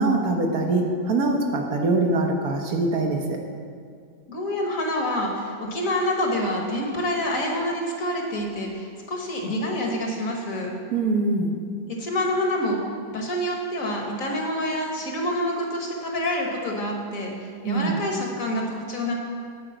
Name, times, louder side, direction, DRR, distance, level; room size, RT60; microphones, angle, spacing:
voice 1, 0.0-3.4 10.9-11.5 17.6-18.0, right 2 dB, 65° right, 3 dB, 1.4 m, -23 dB
voice 2, 4.3-10.7 11.9-12.8 13.1-19.1, left 1 dB, 55° left, 0 dB, 1.7 m, -27 dB
9.1 x 4.9 x 7.7 m, 2.1 s
omnidirectional pair, 1.8 m